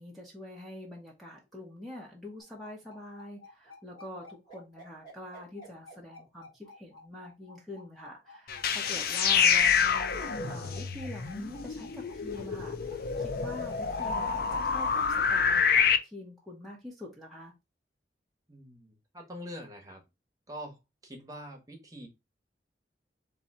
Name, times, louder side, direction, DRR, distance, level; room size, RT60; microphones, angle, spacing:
voice 1, 0.0-10.2 10.5-17.5, left 1 dB, ahead, -2 dB, 0.9 m, -45 dB
sound 1, 2.4-14.9, left 1 dB, 25° left, 2.7 m, -51 dB
sound 2, 8.5-16.0, left 6 dB, 60° left, 0.5 m, -27 dB
voice 2, 18.5-20.0 20.5-22.1, equal, 20° right, 2 dB, 1.1 m, -44 dB
3.9 x 2.8 x 4.2 m, 0.24 s
head